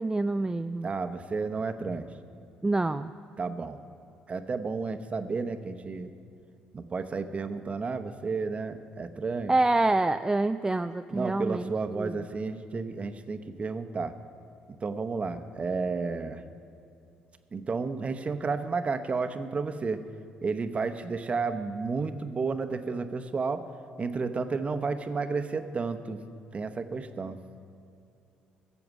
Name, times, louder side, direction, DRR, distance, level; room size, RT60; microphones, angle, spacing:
voice 1, 0.0-0.9 2.6-3.1 9.5-12.2, right 2 dB, 15° right, 9 dB, 0.3 m, -27 dB
voice 2, 0.8-2.1 3.4-3.8 4.3-6.1 6.7-9.5 11.1-14.1 14.8-16.4 17.5-20.0 20.4-23.6 24.0-26.2 26.5-27.4, right 4 dB, 35° right, 9 dB, 0.8 m, -32 dB
15.0 x 7.1 x 6.1 m, 2.6 s
hypercardioid pair, 60°, 4 cm